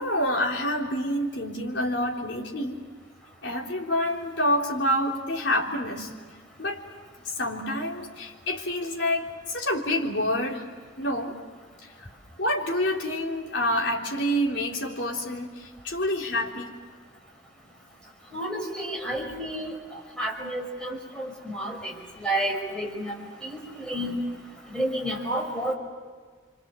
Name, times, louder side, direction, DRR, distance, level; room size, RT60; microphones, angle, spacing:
voice 1, 0.0-2.8 3.4-6.1 6.6-6.8 7.4-10.6 11.0-11.4 12.0-12.1 12.4-16.7, left 1 dB, 70° left, -1 dB, 3.6 m, -27 dB
voice 2, 18.3-19.7 20.2-21.9 22.2-23.1 23.4-24.2 24.7-25.7, right 1 dB, 5° left, -1 dB, 5.3 m, -30 dB
28.5 x 25.0 x 7.6 m, 1.5 s
head